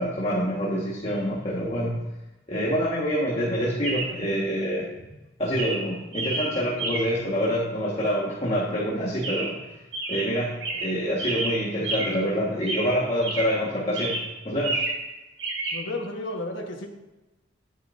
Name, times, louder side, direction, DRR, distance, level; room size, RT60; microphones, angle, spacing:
voice 1, 0.0-2.0 2.5-4.9 5.4-9.6 10.1-14.9, equal, 35° left, -6 dB, 1.6 m, -26 dB
Chirp tweet, 1.1-1.2 3.8-4.2 5.0-5.2 5.6-7.3 9.2-9.7 9.9-12.3 12.6-13.6 13.9-15.1 15.4-15.8, right 2 dB, 85° right, 1.7 m, -31 dB
voice 2, 15.7-16.9, left 2 dB, 80° left, 0 dB, 1.4 m, -32 dB
10.5 x 10.0 x 2.6 m, 1.0 s
head